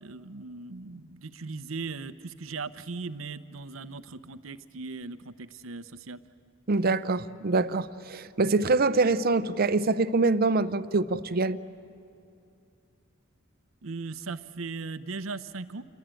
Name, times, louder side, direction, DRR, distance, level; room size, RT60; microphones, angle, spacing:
voice 1, 0.0-6.2 13.8-15.8, right 4 dB, 85° right, 13 dB, 0.8 m, -38 dB
voice 2, 6.7-11.6, right 3 dB, 50° right, 15 dB, 0.6 m, -25 dB
28.5 x 22.5 x 9.1 m, 2.6 s
head